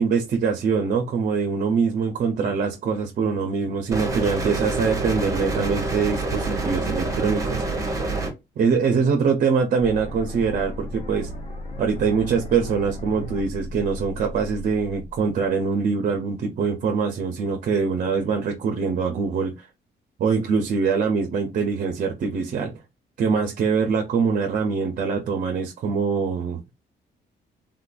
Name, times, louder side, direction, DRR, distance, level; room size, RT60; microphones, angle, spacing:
voice 1, 0.0-7.6 8.6-11.3 11.8-19.7 20.2-22.7 23.2-26.7, right 5 dB, 45° right, 0.6 m, -23 dB
sound 1, 3.9-8.3, right 2 dB, 20° right, 0.9 m, -26 dB
sound 2, 9.8-15.8, right 1 dB, 35° left, 0.8 m, -35 dB
3.6 x 2.4 x 2.3 m
cardioid pair, 155°, 18 cm